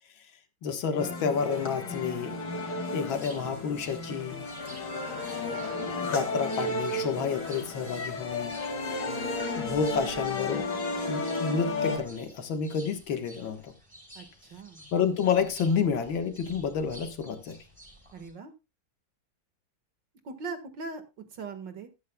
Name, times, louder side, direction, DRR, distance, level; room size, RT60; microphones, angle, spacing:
voice 1, 0.6-2.3 2.9-4.5 6.1-8.5 9.6-10.7 11.1-13.7 14.9-17.6, left 6 dB, 80° left, 2.2 m, -29 dB
sound 1, 1.0-12.0, left 2 dB, 60° left, 2.9 m, -33 dB
sound 2, 2.8-18.3, equal, 5° right, 5.1 m, -52 dB
voice 2, 14.2-14.9 18.1-18.5 20.2-21.0 21.3-21.9, right 4 dB, 65° right, 2.4 m, -40 dB
13.0 x 12.5 x 2.3 m
omnidirectional pair, 2.1 m